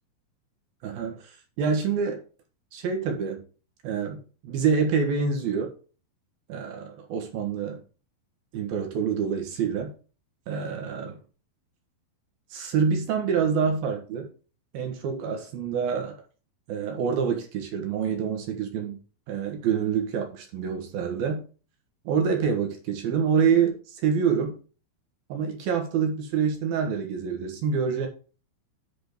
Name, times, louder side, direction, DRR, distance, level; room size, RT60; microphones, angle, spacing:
voice 1, 0.8-2.2 2.7-3.4 3.8-5.7 6.5-7.8 8.5-9.9 10.5-11.2 12.5-14.3 14.7-16.2 16.7-19.0 19.3-21.4 22.0-24.6 25.3-28.1, right 6 dB, 65° right, 3 dB, 2.7 m, -26 dB
10.5 x 5.0 x 5.2 m, 0.37 s
omnidirectional pair, 5.7 m